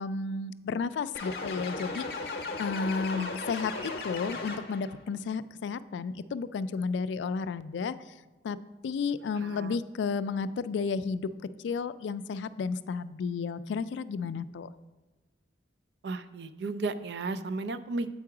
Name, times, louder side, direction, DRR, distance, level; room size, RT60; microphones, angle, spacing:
voice 1, 0.0-2.1 2.6-7.9 8.4-8.6 8.8-11.3 11.6-14.7, left 5 dB, 85° left, 14 dB, 0.3 m, -32 dB
sound 1, 1.1-4.9, left 3 dB, 55° left, 0.7 m, -36 dB
voice 2, 9.3-9.8 16.0-18.1, right 3 dB, 70° right, 12 dB, 0.4 m, -34 dB
7.7 x 4.7 x 4.7 m, 1.2 s
head